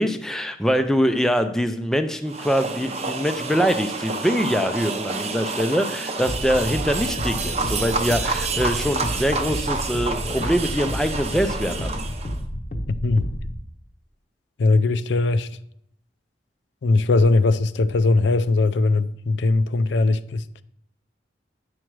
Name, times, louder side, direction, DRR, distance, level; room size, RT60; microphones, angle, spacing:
voice 1, 0.0-11.9, equal, 5° left, 0.4 m, -23 dB
sound 1, 2.3-12.4, right 4 dB, 35° right, 0.7 m, -29 dB
sound 2, 6.3-13.6, equal, 40° left, 0.8 m, -31 dB
voice 2, 12.9-13.3 14.6-15.5 16.8-20.4, left 3 dB, 75° left, 0.4 m, -20 dB
10.0 x 6.1 x 4.7 m
head